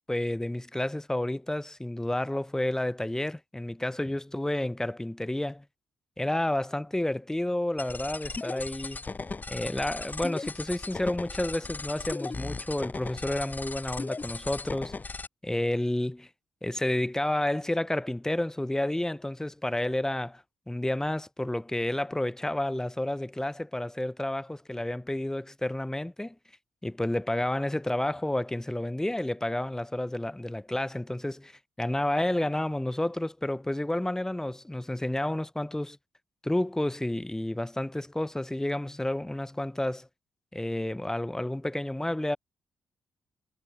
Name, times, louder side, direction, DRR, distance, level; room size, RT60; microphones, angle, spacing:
voice 1, 0.1-5.6 6.2-9.0 9.5-14.9 15.4-16.3 16.6-26.3 26.8-36.0 36.4-40.1 40.5-42.4, left 1 dB, 10° left, 1.6 m, -30 dB
sound 1, 7.8-15.3, left 3 dB, 35° left, 5.3 m, -37 dB
supercardioid pair, 50°, 5 cm